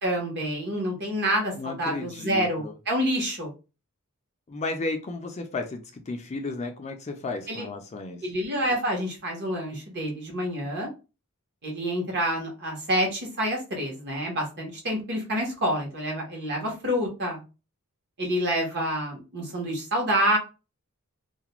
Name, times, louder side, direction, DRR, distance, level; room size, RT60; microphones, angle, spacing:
voice 1, 0.0-3.5 7.5-7.7 8.2-10.9 11.6-17.4 18.2-20.4, equal, 50° right, 1 dB, 0.9 m, -28 dB
voice 2, 1.6-2.7 4.5-8.2, left 3 dB, 30° left, 5 dB, 0.4 m, -33 dB
2.4 x 2.1 x 2.9 m, 0.31 s
head